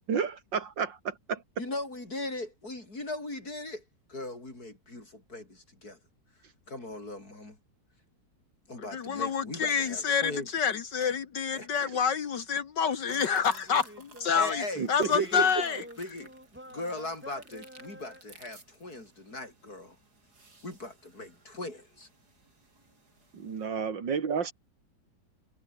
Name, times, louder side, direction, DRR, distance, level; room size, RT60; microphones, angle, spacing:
voice 1, 0.1-1.4 11.8-11.9 14.8-15.1 23.3-24.5, right 6 dB, 85° right, 2.9 m, -31 dB
voice 2, 1.6-3.8 4.1-6.0 6.7-7.6 8.7-10.5 11.5-11.7 14.3-15.5 16.0-16.3 16.7-20.0 20.6-22.1, left 2 dB, 55° left, 7.3 m, -39 dB
voice 3, 8.9-15.8, left 6 dB, 70° left, 2.1 m, -28 dB
sound 1, 13.1-14.5 15.0-18.2, equal, 5° right, 6.2 m, -47 dB
sound 2, 13.1-23.7, right 3 dB, 60° right, 5.4 m, -56 dB
omnidirectional pair, 1.9 m